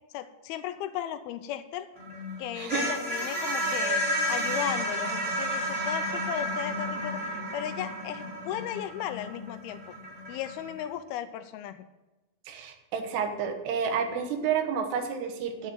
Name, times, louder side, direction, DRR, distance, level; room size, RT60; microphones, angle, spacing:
voice 1, 0.1-1.9 2.4-9.9 10.3-11.9, left 11 dB, 80° left, 11 dB, 2.4 m, -36 dB
sound 1, 2.0-10.8, equal, 15° right, 4.9 m, -31 dB
voice 2, 2.6-3.0 12.5-15.7, right 6 dB, 90° right, 6 dB, 3.4 m, -30 dB
10.5 x 7.4 x 8.0 m, 1.1 s
omnidirectional pair, 4.7 m